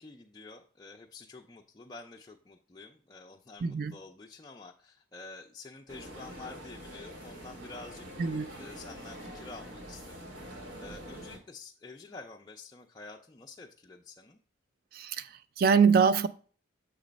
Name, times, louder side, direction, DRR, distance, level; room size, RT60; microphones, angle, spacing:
voice 1, 0.0-8.1 8.5-14.4, left 3 dB, 20° left, 0.4 m, -49 dB
voice 2, 3.6-3.9 8.2-8.5 14.9-16.3, right 6 dB, 50° right, 0.4 m, -24 dB
sound 1, 5.9-11.4, equal, 85° right, 1.3 m, -45 dB
6.7 x 3.1 x 5.1 m
head